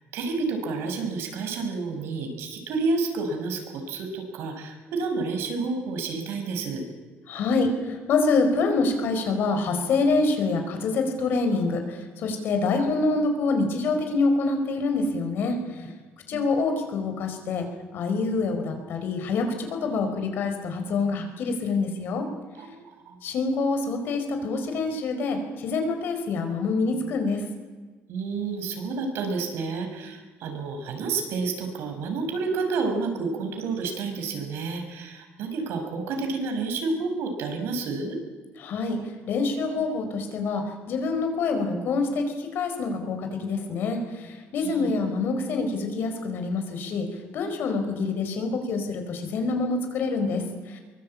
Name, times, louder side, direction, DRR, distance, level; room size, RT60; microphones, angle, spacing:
voice 1, 0.1-6.8 16.3-16.5 22.6-23.2 28.1-38.2 44.6-44.9, right 4 dB, 75° right, 4 dB, 5.3 m, -30 dB
voice 2, 7.3-15.8 16.3-17.7 17.9-22.3 23.2-27.4 38.6-50.8, left 3 dB, 55° left, 6 dB, 4.8 m, -26 dB
23.0 x 22.5 x 8.6 m, 1.3 s
cardioid pair, 165°, 4 cm